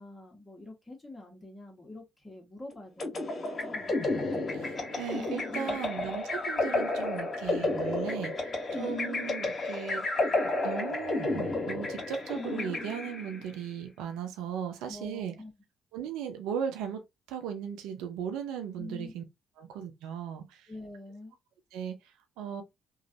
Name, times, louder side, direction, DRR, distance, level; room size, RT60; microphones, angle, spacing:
voice 1, 0.0-3.9 5.7-5.8 14.9-15.5 18.8-19.1 20.7-21.3, left 2 dB, 15° left, 1.4 m, -46 dB
sound 1, 3.0-13.4, left 2 dB, 40° left, 1.5 m, -31 dB
voice 2, 4.5-10.1 10.3-15.3 15.9-17.0 17.3-19.2 19.6-20.7 21.7-22.6, right 8 dB, 75° right, 0.6 m, -37 dB
3.1 x 2.5 x 2.7 m
hypercardioid pair, 50°, 0 cm